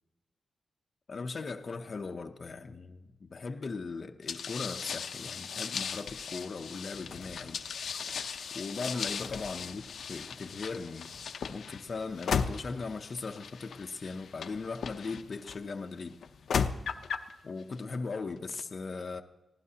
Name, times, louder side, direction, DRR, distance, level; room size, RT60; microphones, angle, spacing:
voice 1, 1.1-7.6 8.5-9.8 10.1-11.1 11.5-16.2 17.4-19.2, left 4 dB, 40° left, 0.6 m, -38 dB
sound 1, 4.3-15.6 16.2-17.3, left 6 dB, 85° left, 0.6 m, -36 dB
23.0 x 16.0 x 2.8 m
wide cardioid pair, 170°, 0 cm